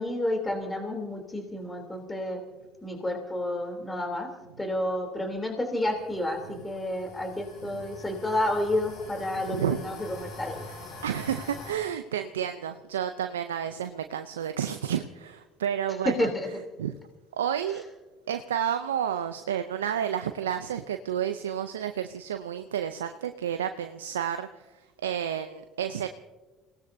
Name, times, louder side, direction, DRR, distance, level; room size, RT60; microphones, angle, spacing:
voice 1, 0.0-2.4 2.8-4.3 4.6-6.4 6.6-10.6 16.0-16.5, left 1 dB, 15° left, 3 dB, 3.1 m, -30 dB
sound 1, 5.7-11.7, left 2 dB, 70° left, 5.5 m, -44 dB
voice 2, 9.5-9.8 11.0-16.3 16.8-16.9 17.4-17.8 18.3-24.5 25.0-26.1, right 9 dB, 90° right, 8 dB, 0.5 m, -30 dB
28.5 x 18.0 x 2.7 m, 1.2 s
hypercardioid pair, 60°, 0 cm